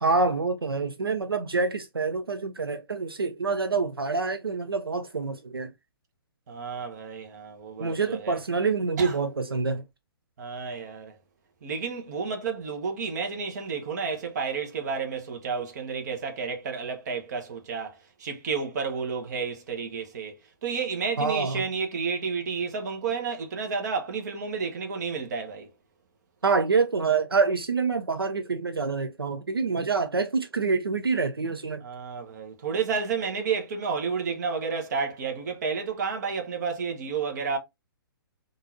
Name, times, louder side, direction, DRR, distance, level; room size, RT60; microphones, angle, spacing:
voice 1, 0.0-5.7 7.8-9.8 21.2-21.6 26.4-31.8, right 4 dB, 85° right, 0.4 m, -26 dB
voice 2, 6.5-8.4 9.0-9.2 10.4-11.2 11.6-20.4 20.6-25.7 31.8-37.6, right 5 dB, 50° right, 1.0 m, -31 dB
3.8 x 2.5 x 2.6 m
figure-of-eight pair, 125°, 12 cm